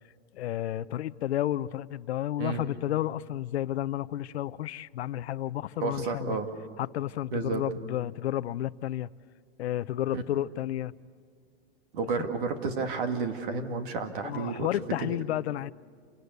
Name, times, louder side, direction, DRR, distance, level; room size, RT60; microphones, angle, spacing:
voice 1, 0.3-6.4 6.8-9.1 9.6-10.9 12.2-12.3 14.2-15.7, left 13 dB, 75° left, 0.7 m, -31 dB
voice 2, 5.8-6.5 7.3-7.6 10.1-10.2 11.9-15.2, right 4 dB, 50° right, 2.4 m, -31 dB
28.0 x 18.0 x 8.2 m
supercardioid pair, 180°, 32 cm